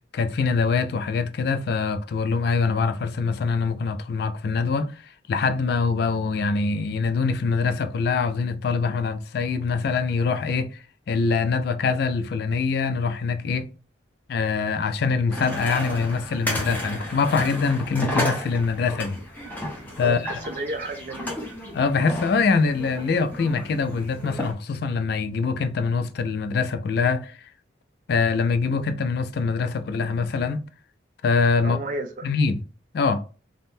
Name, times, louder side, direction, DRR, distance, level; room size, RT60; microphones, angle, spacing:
voice 1, 0.1-5.0 5.3-10.8 11.1-13.7 14.3-19.2 20.0-20.4 21.7-27.4 28.1-30.7 31.2-31.8 32.2-32.6 32.9-33.2, left 4 dB, 55° left, 0.3 m, -24 dB
sound 1, 15.3-24.5, left 1 dB, 10° left, 0.7 m, -33 dB
voice 2, 20.0-21.5 31.6-32.3, right 2 dB, 40° right, 0.4 m, -32 dB
3.4 x 2.1 x 2.6 m
head